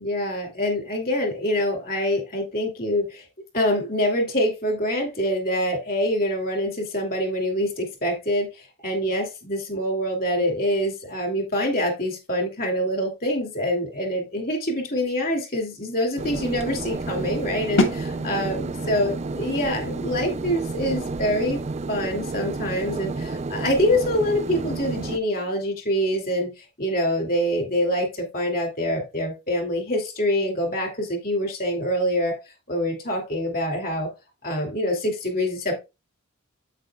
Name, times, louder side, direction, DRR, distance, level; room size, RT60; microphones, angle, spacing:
voice 1, 0.0-3.2 3.5-21.6 21.9-32.4 32.7-34.1 34.4-35.8, equal, 40° left, 2.8 m, -25 dB
sound 1, 16.2-25.2, right 3 dB, 30° right, 0.4 m, -31 dB
sound 2, 17.8-23.5, left 2 dB, 60° left, 1.7 m, -31 dB
8.8 x 8.4 x 2.3 m
head